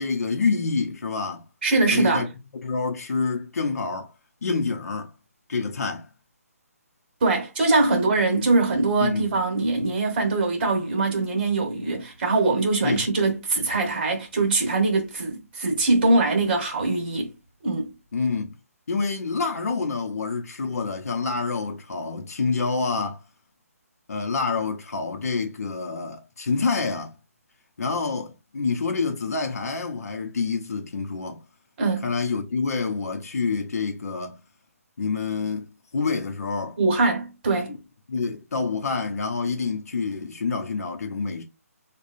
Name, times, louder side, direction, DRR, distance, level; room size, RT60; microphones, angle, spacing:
voice 1, 0.0-1.4 1.9-2.3 2.6-4.1 4.4-5.1 5.5-6.1 7.9-8.0 9.0-9.3 12.8-13.1 18.1-18.6 18.9-23.2 24.1-27.2 27.8-31.4 32.0-34.4 35.0-35.7 35.9-36.8 37.7-37.8 38.1-41.4, left 4 dB, 70° left, 0.8 m, -27 dB
voice 2, 1.6-2.3 7.2-17.3 17.6-17.9 31.8-32.0 36.8-37.7, right 3 dB, 35° right, 1.3 m, -22 dB
4.9 x 2.3 x 2.6 m
hypercardioid pair, 160°, 8 cm